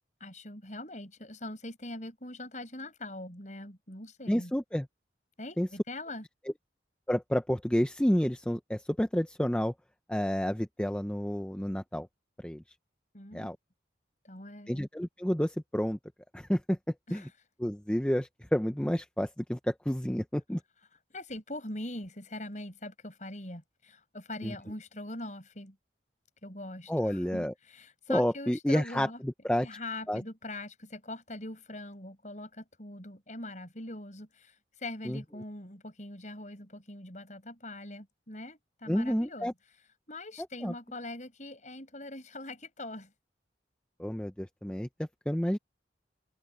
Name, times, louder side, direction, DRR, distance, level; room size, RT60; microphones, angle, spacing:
voice 1, 0.2-4.5 5.4-6.2 13.1-13.5 14.2-14.8 17.1-17.3 21.1-25.8 26.4-29.2 29.6-39.5 40.1-43.1, left 1 dB, 40° left, 7.1 m, -42 dB
voice 2, 4.3-4.9 5.6-5.7 7.1-9.7 10.1-12.1 12.4-12.6 13.3-13.6 14.7-16.0 16.3-16.8 17.1-17.3 17.6-20.6 24.4-24.5 26.9-27.5 28.1-29.7 30.1-30.2 35.1-35.2 38.9-39.5 40.6-40.7 44.0-44.9 45.3-45.6, equal, 5° left, 0.6 m, -30 dB
open air
head